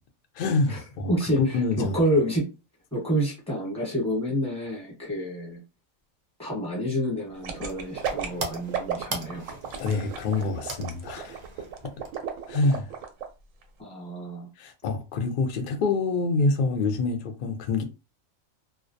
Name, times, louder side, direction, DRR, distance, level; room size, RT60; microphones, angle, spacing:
voice 1, 0.3-2.0 9.8-11.9 12.5-12.9 14.6-17.8, left 3 dB, 70° left, 0.5 m, -26 dB
voice 2, 1.1-2.4 2.9-5.6 6.4-9.6 13.8-14.5, equal, 5° left, 0.9 m, -28 dB
sound 1, 7.2-12.6, right 3 dB, 60° right, 0.4 m, -40 dB
sound 2, 7.4-13.2 13.6-13.7, right 8 dB, 85° right, 1.0 m, -33 dB
2.2 x 2.1 x 2.6 m
omnidirectional pair, 1.3 m